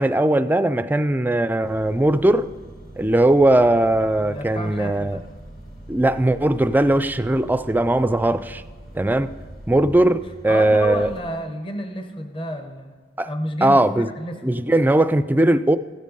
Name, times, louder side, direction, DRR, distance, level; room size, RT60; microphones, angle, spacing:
voice 1, 0.0-2.5 3.0-5.2 5.9-8.6 8.9-9.3 9.7-11.1 13.2-13.3 13.6-14.1 14.4-15.8, right 1 dB, 10° right, 0.3 m, -19 dB
sound 1, 1.6-11.2, right 1 dB, 55° left, 1.7 m, -42 dB
voice 2, 4.2-5.2 10.5-13.0 13.3-13.8 14.2-14.5, equal, 30° left, 0.9 m, -31 dB
15.0 x 7.4 x 5.4 m
head